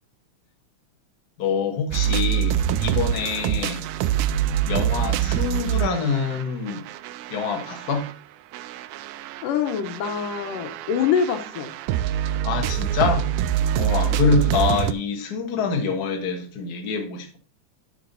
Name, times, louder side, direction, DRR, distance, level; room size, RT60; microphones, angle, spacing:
voice 1, 1.4-3.8 4.6-6.9 7.3-8.1 12.4-13.3 13.8-17.4, left 5 dB, 45° left, 1.3 m, -25 dB
sound 1, 1.9-8.1 8.5-14.9, right 10 dB, 80° right, 2.0 m, -25 dB
voice 2, 9.4-11.7, left 7 dB, 85° left, 2.7 m, -25 dB
10.5 x 5.8 x 4.0 m
omnidirectional pair, 3.8 m